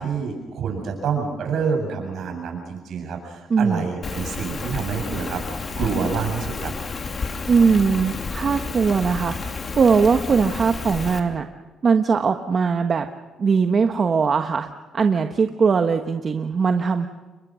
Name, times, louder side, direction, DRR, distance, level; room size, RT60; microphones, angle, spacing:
voice 1, 0.0-5.4 5.8-6.7, right 6 dB, 70° right, 3 dB, 7.7 m, -27 dB
voice 2, 3.5-3.9 7.5-11.4 11.8-13.0 13.4-14.7 14.9-17.1, right 5 dB, 45° right, 6 dB, 1.3 m, -20 dB
Rain, 4.0-11.2, left 4 dB, 40° left, 2.7 m, -31 dB
29.5 x 22.5 x 6.4 m, 1.3 s
cardioid pair, 90°, 0 cm